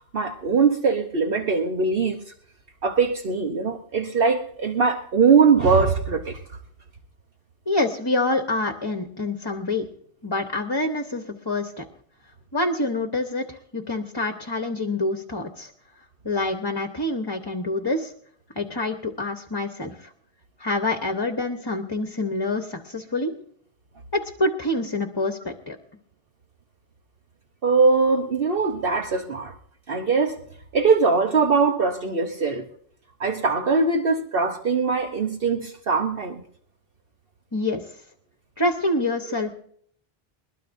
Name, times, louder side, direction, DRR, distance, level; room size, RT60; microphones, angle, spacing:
voice 1, 0.1-2.2 2.8-6.4 27.6-29.5 29.9-30.4 30.7-32.6 33.2-36.4, right 5 dB, 65° right, 3 dB, 1.3 m, -21 dB
voice 2, 7.7-9.9 10.2-11.8 12.5-15.7 16.2-18.1 18.6-20.1 20.6-23.3 24.1-25.8 37.5-38.0 38.6-39.5, left 2 dB, 25° left, 5 dB, 1.0 m, -26 dB
22.0 x 20.0 x 2.7 m, 0.63 s
omnidirectional pair, 1.0 m